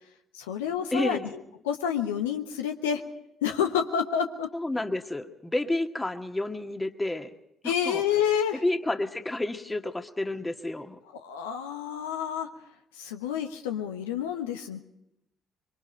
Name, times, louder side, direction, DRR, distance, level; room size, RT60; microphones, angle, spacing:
voice 1, 0.3-3.0 3.4-4.5 7.6-8.6 11.1-12.5 13.0-14.8, left 8 dB, 75° left, 5 dB, 1.2 m, -29 dB
voice 2, 0.9-1.3 4.5-7.3 7.6-8.0 8.6-11.0, left 2 dB, 15° left, 6 dB, 1.9 m, -30 dB
25.0 x 24.0 x 4.6 m, 0.82 s
figure-of-eight pair, 50°, 0 cm